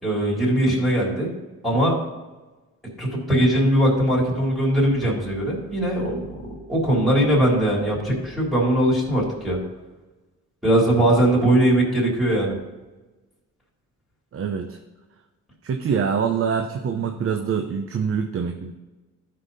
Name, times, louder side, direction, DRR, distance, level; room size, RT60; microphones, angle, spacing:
voice 1, 0.0-1.3 1.6-1.9 3.0-9.6 10.6-12.6, right 1 dB, ahead, -6 dB, 3.5 m, -20 dB
voice 2, 14.3-14.8 15.6-18.7, right 6 dB, 50° right, 6 dB, 0.8 m, -25 dB
12.5 x 5.7 x 4.1 m, 1.2 s
cardioid pair, 90°, 30 cm